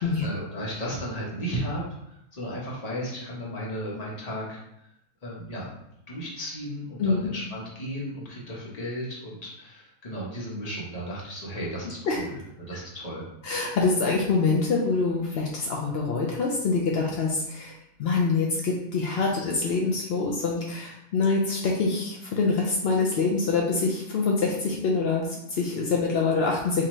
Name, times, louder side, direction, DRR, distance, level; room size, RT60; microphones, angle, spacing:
voice 1, 0.0-4.6 5.2-5.7 6.1-12.4 12.7-13.2, equal, 30° left, -5 dB, 1.0 m, -34 dB
voice 2, 13.4-26.8, left 4 dB, 75° left, -1 dB, 0.5 m, -25 dB
4.1 x 2.8 x 3.1 m, 0.80 s
omnidirectional pair, 1.6 m